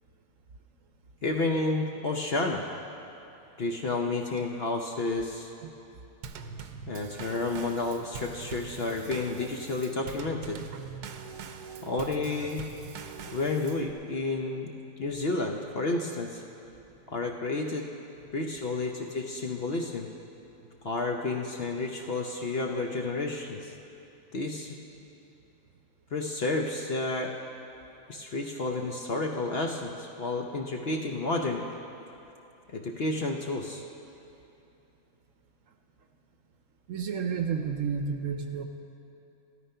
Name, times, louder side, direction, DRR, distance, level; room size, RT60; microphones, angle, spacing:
voice 1, 1.2-2.7 3.6-5.5 6.9-10.6 11.8-12.7 13.3-14.7 15.0-16.4 17.1-17.9 18.3-20.1 20.8-23.7 24.3-24.8 26.1-27.3 28.1-31.6 32.7-33.8, left 3 dB, 50° left, 2 dB, 0.8 m, -31 dB
Drum kit / Snare drum / Bass drum, 6.2-13.9, right 6 dB, 90° right, 1.3 m, -42 dB
voice 2, 36.9-38.6, right 6 dB, 60° right, 6 dB, 1.0 m, -31 dB
13.0 x 13.0 x 5.6 m, 2.9 s
omnidirectional pair, 1.7 m